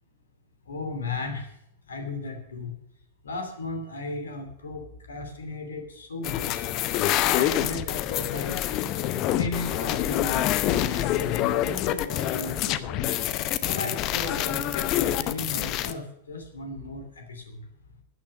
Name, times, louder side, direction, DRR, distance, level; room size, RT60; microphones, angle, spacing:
voice 1, 0.7-1.5 1.9-2.7 3.2-6.7 7.2-8.6 9.3-13.0 13.6-17.6, left 3 dB, 70° left, 6 dB, 2.7 m, -35 dB
sound 1, 6.2-15.9, left 13 dB, 40° left, 0.8 m, -26 dB
13.0 x 9.5 x 6.5 m, 0.77 s
figure-of-eight pair, 90°, 0 cm